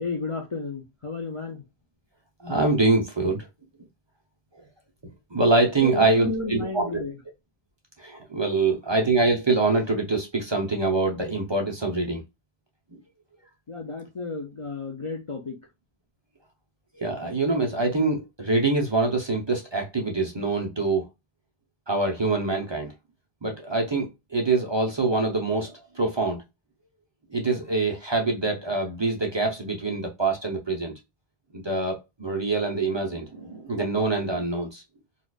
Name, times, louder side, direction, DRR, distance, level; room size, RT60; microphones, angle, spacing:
voice 1, 0.0-1.6 5.8-7.2 13.7-15.6, left 3 dB, 40° left, 0.5 m, -32 dB
voice 2, 2.4-3.5 5.3-6.9 8.0-12.2 12.9-13.0 16.9-21.1 21.9-22.9 23.4-26.4 27.3-30.9 31.5-34.8, right 3 dB, 30° right, 0.7 m, -25 dB
4.1 x 2.4 x 2.3 m
omnidirectional pair, 1.1 m